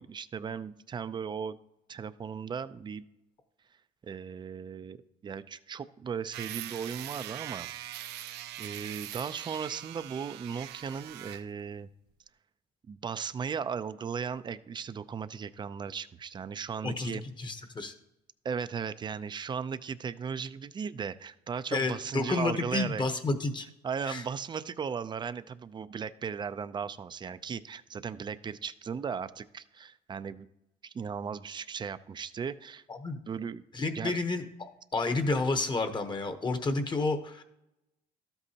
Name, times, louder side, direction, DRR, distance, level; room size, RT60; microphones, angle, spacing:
voice 1, 0.0-1.6 1.9-3.1 4.0-5.0 5.2-7.7 8.6-11.9 12.9-17.2 18.4-23.0 23.8-30.5 30.8-32.8 33.3-33.6 33.9-34.1, right 6 dB, 25° right, 14 dB, 0.4 m, -36 dB
sound 1, 6.3-11.5, right 13 dB, 85° right, 0.5 m, -42 dB
voice 2, 16.8-17.9 21.7-23.7 24.1-24.2 32.9-33.2 33.7-37.4, left 3 dB, 25° left, 8 dB, 0.9 m, -30 dB
12.5 x 8.0 x 2.8 m, 0.86 s
cardioid pair, 110°, 17 cm